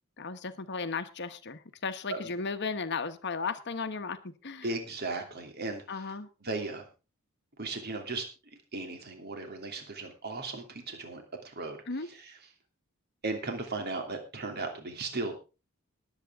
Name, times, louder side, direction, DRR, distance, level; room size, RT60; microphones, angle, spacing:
voice 1, 0.2-4.7 5.9-6.3 11.9-12.1, left 4 dB, 55° left, 9 dB, 1.1 m, -35 dB
voice 2, 4.6-5.8 6.4-6.9 7.6-11.8 12.2-12.3 13.2-15.4, right 3 dB, 50° right, 4 dB, 2.8 m, -36 dB
21.0 x 8.4 x 3.6 m, 0.31 s
head